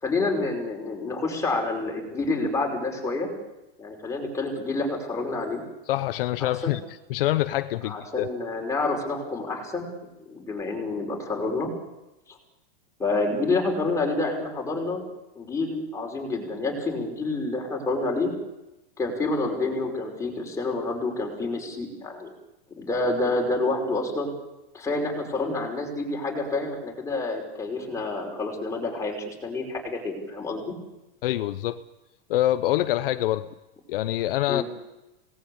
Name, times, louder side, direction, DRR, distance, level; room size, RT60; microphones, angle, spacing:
voice 1, 0.0-3.3 3.8-5.6 6.4-6.7 7.8-9.9 10.2-11.7 13.0-15.0 15.4-18.3 19.0-22.3 22.8-24.3 24.7-30.6 34.5-34.6, left 2 dB, 10° left, 0 dB, 5.5 m, -28 dB
voice 2, 5.9-8.3 31.2-31.8 32.3-33.5 33.9-34.6, left 14 dB, 60° left, 11 dB, 0.9 m, -25 dB
27.0 x 19.0 x 8.6 m, 1.0 s
supercardioid pair, 160°, 31 cm